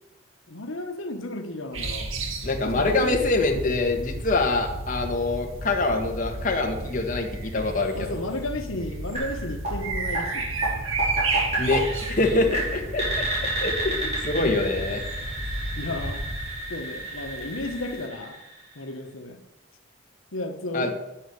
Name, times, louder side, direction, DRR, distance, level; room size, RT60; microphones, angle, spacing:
voice 1, 0.5-2.1 2.6-3.5 7.9-10.5 12.2-12.4 14.3-14.6 15.8-16.2 16.7-18.4 18.7-19.4 20.3-20.9, left 1 dB, 90° left, 5 dB, 1.3 m, -33 dB
sound 1, 1.7-18.0, right 2 dB, 85° right, 2.1 m, -33 dB
voice 2, 2.4-8.1 11.6-13.3 13.6-15.0 20.7-20.9, left 2 dB, 40° left, 2 dB, 1.7 m, -25 dB
sound 2, 9.1-18.9, right 2 dB, 35° right, 5.5 m, -32 dB
10.0 x 9.5 x 7.1 m, 0.93 s
head